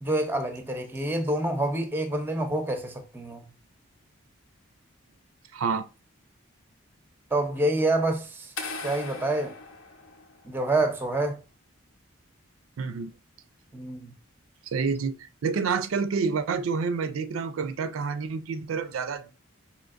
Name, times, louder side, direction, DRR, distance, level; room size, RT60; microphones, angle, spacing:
voice 1, 0.0-3.4 7.3-8.5 8.8-9.5 10.4-11.4 13.7-14.1, right 2 dB, 10° right, 0.5 m, -27 dB
voice 2, 5.5-5.9 12.8-13.1 14.7-19.4, right 5 dB, 80° right, 0.4 m, -28 dB
sound 1, 8.6-10.7, left 3 dB, 70° left, 0.8 m, -39 dB
5.0 x 2.9 x 2.4 m
head